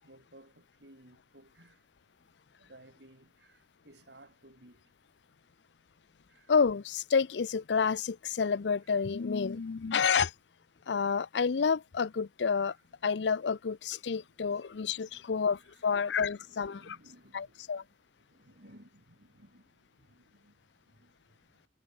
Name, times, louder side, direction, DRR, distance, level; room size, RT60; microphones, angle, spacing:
voice 1, 0.0-1.9 2.5-4.9 6.3-6.5 8.8-9.1 12.6-12.7 14.1-14.6 14.9-15.3 15.6-15.9 16.3-21.7, right 1 dB, 75° right, 7.2 m, -59 dB
voice 2, 6.5-10.3 10.9-12.7 13.0-16.8 17.3-17.8, left 6 dB, 80° left, 0.5 m, -29 dB
head